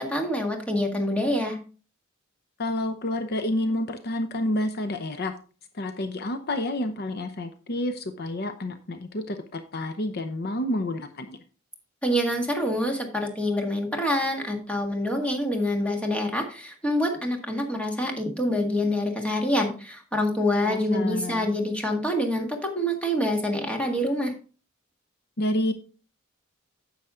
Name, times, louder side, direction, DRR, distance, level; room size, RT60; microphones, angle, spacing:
voice 1, 0.0-1.6 12.0-24.3, left 1 dB, 5° left, 2 dB, 1.8 m, -26 dB
voice 2, 2.6-5.3 5.7-11.4 20.6-21.6 25.4-25.7, left 1 dB, 50° left, 9 dB, 0.7 m, -29 dB
9.8 x 7.2 x 3.7 m, 0.37 s
head